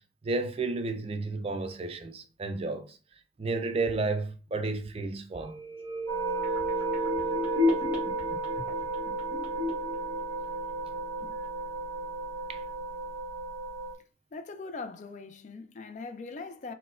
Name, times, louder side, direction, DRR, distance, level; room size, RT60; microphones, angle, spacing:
voice 1, 0.2-3.0 3.4-5.6 11.2-11.3 12.5-12.6, right 3 dB, 30° right, 0.4 m, -32 dB
sound 1, 5.4-11.1 11.4-11.5, left 1 dB, 10° right, 1.2 m, -33 dB
sound 2, 6.1-13.9, right 3 dB, 20° left, 1.2 m, -34 dB
voice 2, 14.3-16.7, left 3 dB, 40° left, 0.3 m, -41 dB
4.1 x 2.1 x 2.4 m
head